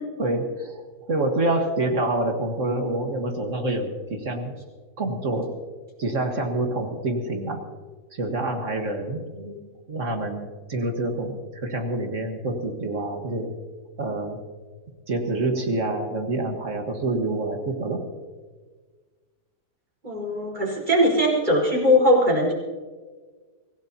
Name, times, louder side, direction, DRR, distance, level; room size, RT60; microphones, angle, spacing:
voice 1, 0.2-0.8 1.1-4.6 5.0-5.5 6.0-7.6 8.2-9.2 9.9-13.5 14.0-14.4 15.1-18.0, right 2 dB, 50° right, 4 dB, 1.8 m, -27 dB
voice 2, 20.0-22.5, equal, 25° right, -3 dB, 4.7 m, -20 dB
24.5 x 16.5 x 2.9 m, 1.4 s
omnidirectional pair, 1.7 m